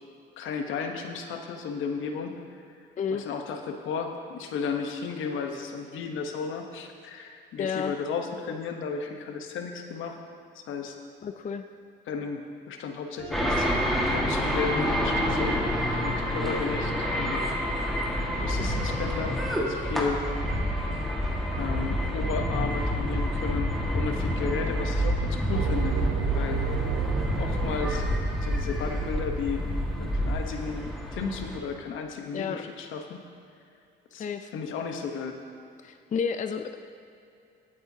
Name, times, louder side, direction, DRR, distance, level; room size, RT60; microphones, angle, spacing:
voice 1, 0.4-2.6 3.1-10.2 10.5-10.9 12.1-13.7 14.1-15.6 15.9-17.4 18.4-20.2 21.6-25.9 26.3-26.6 27.4-28.1 28.4-29.7 30.0-33.2 34.1-34.2 34.5-35.4, left 5 dB, 80° left, 4 dB, 1.1 m, -34 dB
voice 2, 7.6-7.9 11.2-11.6 32.3-32.6 34.2-34.5 35.8-36.7, left 6 dB, 40° left, 8 dB, 0.5 m, -31 dB
sound 1, 13.2-21.8, right 2 dB, 35° right, 2.3 m, -42 dB
sound 2, 13.3-31.6, equal, ahead, 1.7 m, -28 dB
sound 3, 25.5-28.9, right 9 dB, 90° right, 0.7 m, -31 dB
17.5 x 8.7 x 2.8 m, 2.5 s
cardioid pair, 90°, 20 cm